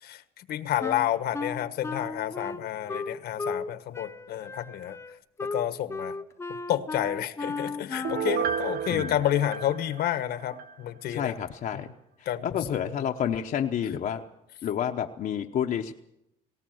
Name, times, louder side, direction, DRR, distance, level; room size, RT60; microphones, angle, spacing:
voice 1, 0.0-5.0 5.4-6.2 6.5-11.3 11.7-11.8 12.2-12.9, left 12 dB, 70° left, 12 dB, 1.3 m, -30 dB
Wind instrument woodwind instrument, 0.8-3.7 3.9-8.4, left 3 dB, 15° left, 0.7 m, -35 dB
Piano, 8.0-10.7 11.1-11.2, right 7 dB, 65° right, 0.9 m, -32 dB
voice 2, 11.1-11.9 12.2-14.2 14.6-15.9, left 9 dB, 55° left, 3 dB, 1.0 m, -29 dB
19.0 x 17.5 x 7.9 m, 0.86 s
cardioid pair, 110°, 17 cm